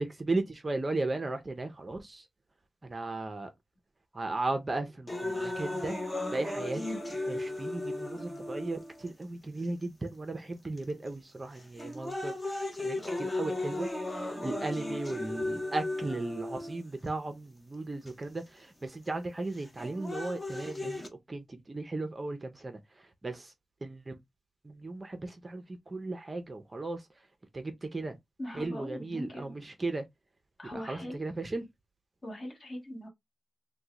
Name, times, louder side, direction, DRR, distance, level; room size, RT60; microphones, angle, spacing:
voice 1, 0.0-2.2 2.8-3.5 4.1-6.0 6.3-7.0 7.3-12.3 12.8-21.0 21.3-22.8 23.2-23.5 23.8-24.2 24.6-27.0 27.5-28.2 28.5-30.0 30.7-31.6, right 2 dB, 25° right, 0.5 m, -36 dB
sound 1, 5.1-9.1 9.8-9.9 10.8-11.1 11.6-17.1 18.1-18.2 19.6-21.1, left 2 dB, 20° left, 0.6 m, -35 dB
voice 2, 28.4-29.5 30.6-31.2 32.2-33.1, equal, 35° left, 1.3 m, -41 dB
3.6 x 2.1 x 2.8 m
wide cardioid pair, 135°, 0 cm